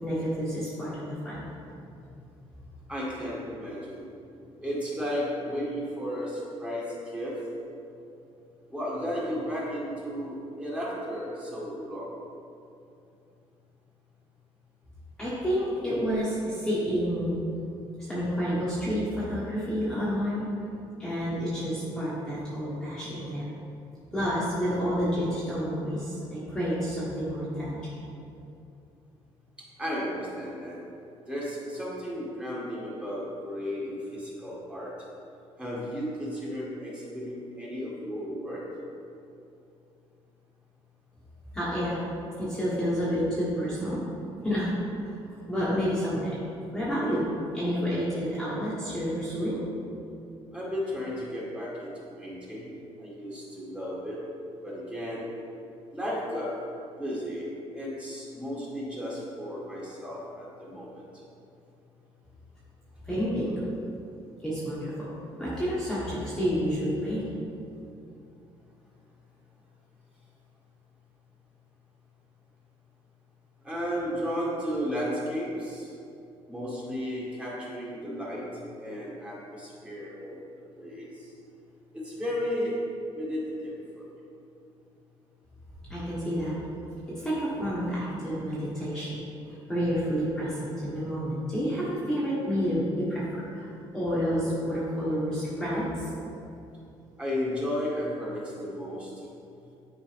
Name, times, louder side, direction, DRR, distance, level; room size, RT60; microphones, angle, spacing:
voice 1, 0.0-1.4 15.2-17.4 18.0-20.5 21.0-23.6 24.1-27.9 41.5-42.0 42.4-44.0 44.4-44.7 45.5-46.4 46.7-49.6 63.0-63.6 64.4-65.1 65.4-67.3 85.9-86.6 87.1-89.2 89.7-96.1, equal, 5° left, -10 dB, 1.3 m, -29 dB
voice 2, 2.9-4.1 4.6-7.3 8.7-12.1 29.8-30.8 31.3-34.9 35.6-38.6 50.5-52.7 53.0-54.2 54.6-55.2 55.9-56.6 57.0-57.5 57.7-61.0 73.6-75.9 76.5-80.4 80.8-81.3 81.9-82.8 83.1-84.1 97.2-99.1, equal, 10° right, -7 dB, 1.7 m, -34 dB
10.0 x 4.8 x 3.4 m, 2.7 s
cardioid pair, 145°, 11 cm